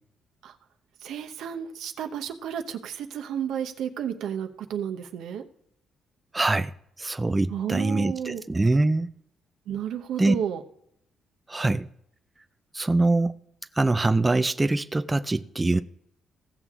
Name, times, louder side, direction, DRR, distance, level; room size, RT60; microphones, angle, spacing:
voice 1, 1.0-5.4 7.5-8.4 9.7-10.6, right 9 dB, 80° right, 0.9 m, -32 dB
voice 2, 6.3-6.7 7.0-9.1 10.2-10.3 11.5-11.9 12.7-13.4 13.8-15.8, right 2 dB, 20° right, 0.4 m, -23 dB
16.0 x 6.7 x 3.6 m
cardioid pair, 90°, 0 cm